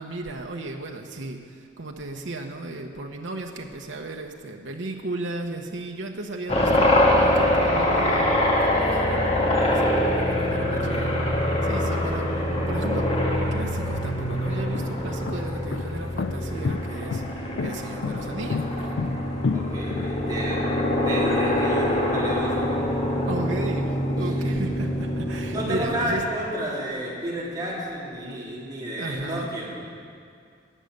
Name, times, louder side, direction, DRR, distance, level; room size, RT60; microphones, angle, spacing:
voice 1, 0.0-13.1 13.5-19.0 23.3-26.2 29.0-29.5, right 2 dB, 80° right, 2 dB, 1.0 m, -35 dB
sound 1, 6.5-26.2, left 1 dB, 35° left, 1.5 m, -24 dB
voice 2, 10.7-11.1 19.5-20.7 21.0-22.7 24.2-24.5 25.5-29.7, right 1 dB, 20° right, -7 dB, 3.5 m, -31 dB
sound 2, 13.3-13.4 14.1-20.6, left 5 dB, 60° left, 0.4 m, -30 dB
19.0 x 6.5 x 8.1 m, 2.3 s
head